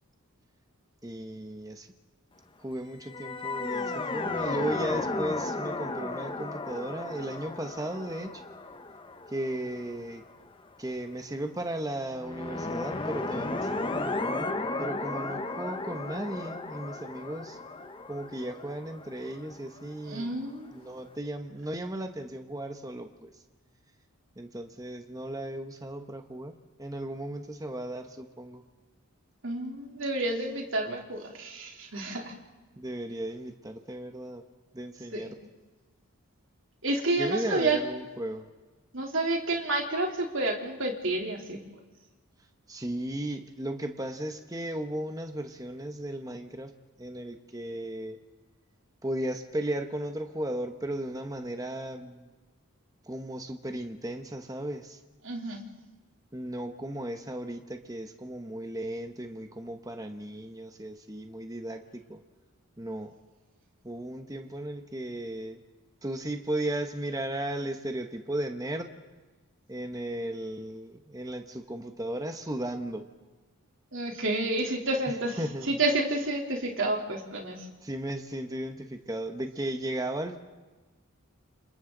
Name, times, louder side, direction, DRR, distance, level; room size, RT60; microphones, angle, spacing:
voice 1, 1.0-1.9 2.6-8.4 9.3-10.2 10.8-14.5 14.8-17.6 18.1-20.4 20.7-23.3 24.4-28.6 32.8-34.4 34.7-35.4 37.2-38.5 42.7-46.7 47.0-48.2 49.0-52.3 53.0-55.0 56.3-62.2 62.8-63.1 63.8-65.6 66.0-68.9 69.7-73.1 75.1-75.7 77.8-80.4, right 1 dB, 15° right, 6 dB, 1.1 m, -35 dB
sound 1, 3.0-10.3 12.1-19.9, left 2 dB, 25° left, 1.0 m, -34 dB
voice 2, 20.0-20.7 29.4-32.3 35.1-35.3 36.8-37.8 38.9-41.6 55.2-55.6 73.9-75.4 75.7-77.7, right 2 dB, 60° right, 1 dB, 3.4 m, -29 dB
29.5 x 27.0 x 4.0 m, 1.3 s
head